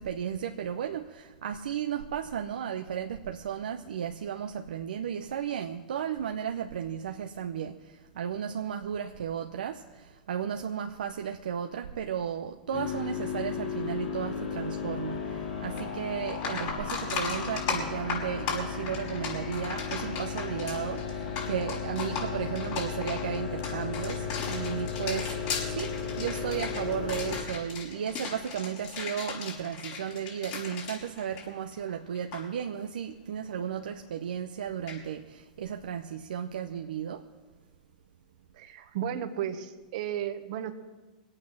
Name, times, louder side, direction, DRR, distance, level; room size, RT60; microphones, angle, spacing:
voice 1, 0.0-37.3, right 8 dB, 80° right, 5 dB, 0.7 m, -34 dB
sound 1, 12.7-27.4, left 6 dB, 85° left, 3.4 m, -35 dB
sound 2, 15.8-15.9 16.3-32.4 34.9-35.0, left 6 dB, 55° left, 5.5 m, -36 dB
voice 2, 38.5-40.7, right 10 dB, 60° right, 9 dB, 1.2 m, -34 dB
22.0 x 8.7 x 6.1 m, 1.3 s
hypercardioid pair, 110°, 5 cm